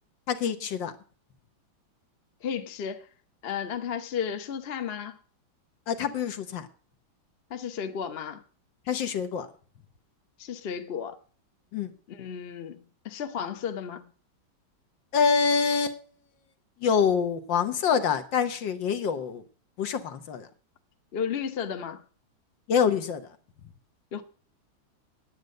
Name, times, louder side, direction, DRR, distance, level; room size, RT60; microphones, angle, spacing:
voice 1, 0.3-0.9 5.9-6.7 8.9-9.5 11.7-11.9 15.1-16.0 16.8-19.4 19.8-20.5 22.7-23.3, left 6 dB, 70° left, 1.7 m, -26 dB
voice 2, 2.4-3.0 3.4-5.2 7.5-8.4 10.4-11.2 12.1-12.8 13.0-14.0 21.1-22.0 24.1-24.2, left 7 dB, 45° left, 0.8 m, -33 dB
9.5 x 9.4 x 6.5 m
omnidirectional pair, 2.2 m